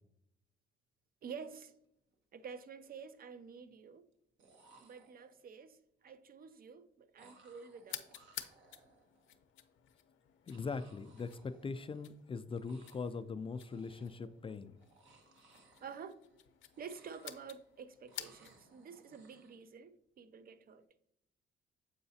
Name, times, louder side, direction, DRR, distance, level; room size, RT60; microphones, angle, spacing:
voice 1, 1.2-1.7 2.3-4.1 4.8-8.1 14.2-14.3 15.8-16.2 16.8-20.8, right 6 dB, 50° right, 0.5 m, -49 dB
sound 1, 2.0-2.2 2.5-3.1 4.1-4.2 4.4-5.6 7.2-9.4 10.5-12.2 12.5-13.2 13.5-14.3 14.8-16.4 16.7-17.7 18.1-19.6, right 3 dB, 70° right, 1.1 m, -65 dB
sound 2, 7.8-18.7, left 11 dB, 80° left, 0.6 m, -52 dB
voice 2, 10.5-14.8, left 4 dB, 25° left, 0.3 m, -41 dB
7.7 x 4.8 x 2.7 m
cardioid pair, 90°, 20 cm